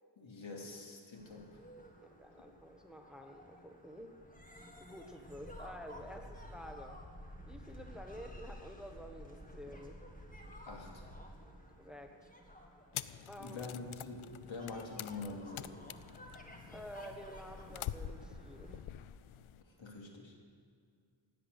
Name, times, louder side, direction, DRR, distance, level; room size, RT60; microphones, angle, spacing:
voice 1, 0.2-1.6 2.3-2.4 10.7-11.0 13.0-15.7 19.6-20.4, left 3 dB, 70° left, 0 dB, 2.9 m, -46 dB
sound 1, 1.1-18.8, equal, 15° left, 1.9 m, -53 dB
voice 2, 2.2-4.2 4.8-7.0 7.5-10.0 11.8-12.3 13.3-13.8 16.7-18.8, equal, ahead, 4 dB, 1.2 m, -50 dB
sound 2, 12.9-19.6, left 12 dB, 85° left, 0.6 m, -47 dB
16.0 x 10.0 x 8.0 m, 2.2 s
wide cardioid pair, 105°, 48 cm